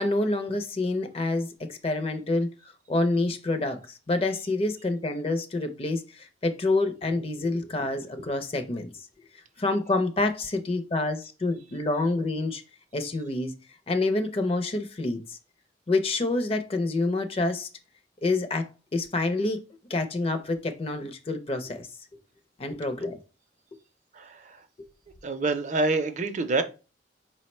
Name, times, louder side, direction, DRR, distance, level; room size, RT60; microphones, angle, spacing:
voice 1, 0.0-2.5 2.9-8.9 9.6-12.6 12.9-13.5 13.9-15.4 15.9-17.7 18.2-19.6 19.9-21.9 22.6-23.2 24.8-24.9, left 2 dB, 30° left, 0.5 m, -27 dB
voice 2, 24.1-24.6 25.2-26.6, right 3 dB, 40° right, 0.4 m, -27 dB
4.6 x 2.1 x 4.2 m
head